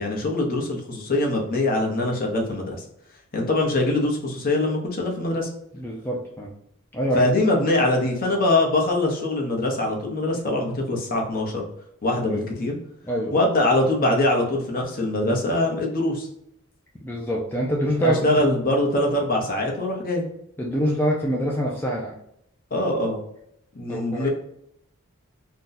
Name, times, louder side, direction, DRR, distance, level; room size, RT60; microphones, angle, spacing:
voice 1, 0.0-2.8 3.3-5.5 7.1-11.6 12.0-12.8 13.3-16.3 18.0-20.2 22.7-23.2 23.7-24.3, left 2 dB, 40° left, 1 dB, 0.8 m, -23 dB
voice 2, 5.7-6.5 6.9-7.2 12.1-12.5 13.1-13.4 17.0-18.5 20.6-22.1 23.9-24.3, equal, 10° left, -4 dB, 0.4 m, -25 dB
2.6 x 2.2 x 3.8 m, 0.75 s
head